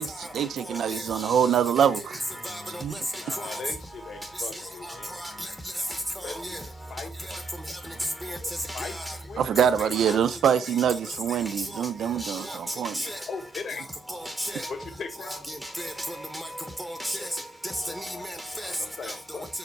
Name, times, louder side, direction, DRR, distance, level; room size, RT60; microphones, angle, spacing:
voice 1, 0.0-2.2 2.8-2.9 9.4-12.9, right 8 dB, 85° right, 0.7 m, -24 dB
voice 2, 0.7-1.5 1.8-1.9 2.4-2.8 3.1-3.6 4.5-5.5 5.9-6.6 7.3-7.4 7.7-7.8 8.2-8.4 8.7-9.2 9.9-10.1 11.6-11.9 12.2-12.6 12.9-13.2 14.1-14.7 15.3-16.5 16.8-18.8 19.0-19.1, equal, 5° right, 0.8 m, -35 dB
voice 3, 3.1-5.1 6.2-6.6 6.9-7.1 8.4-10.2 10.5-10.6 11.5-11.6 13.0-13.9 14.7-15.5 17.9-19.5, left 5 dB, 55° left, 1.5 m, -40 dB
6.4 x 5.1 x 4.6 m
wide cardioid pair, 165°, 0 cm